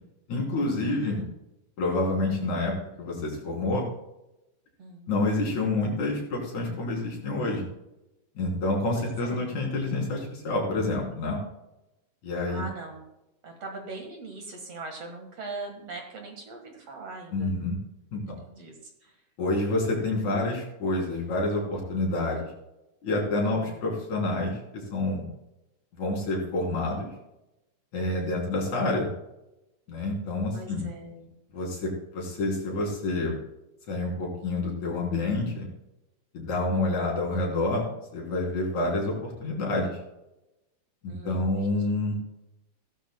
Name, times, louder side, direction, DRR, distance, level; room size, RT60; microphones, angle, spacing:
voice 1, 0.3-1.2 1.8-3.9 5.1-7.7 8.4-11.4 12.2-12.7 17.3-17.8 18.1-18.4 19.4-22.5 23.0-25.3 26.0-27.1 27.9-29.1 29.9-30.8 31.5-33.4 33.9-35.7 36.3-40.0 41.0-42.2, left 2 dB, 60° left, -2 dB, 4.7 m, -28 dB
voice 2, 0.8-1.2 4.8-5.1 8.9-9.5 12.5-13.0 13.4-17.5 18.5-19.2 23.4-23.8 28.2-28.5 30.5-31.3 36.7-37.1 41.1-41.7, right 3 dB, 55° right, 2 dB, 2.5 m, -41 dB
16.0 x 13.0 x 2.3 m, 0.91 s
omnidirectional pair, 3.8 m